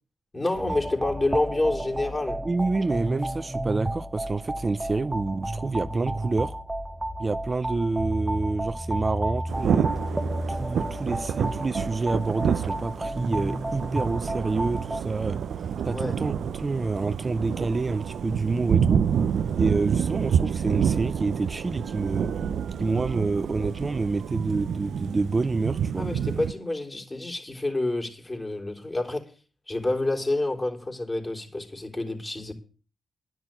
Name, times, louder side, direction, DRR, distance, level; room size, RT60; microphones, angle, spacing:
voice 1, 0.3-2.4 15.9-16.1 26.0-29.3 29.7-32.5, left 2 dB, 30° left, 3.8 m, -28 dB
sound 1, 0.5-15.0, right 1 dB, 15° right, 0.9 m, -32 dB
voice 2, 2.4-6.5 7.2-9.9 10.5-15.4 15.8-19.0 19.6-22.3 22.8-26.1, right 3 dB, 40° right, 0.6 m, -28 dB
Thunder / Rain, 9.5-26.5, right 8 dB, 80° right, 0.5 m, -28 dB
11.0 x 6.0 x 8.9 m
cardioid pair, 50°, 0 cm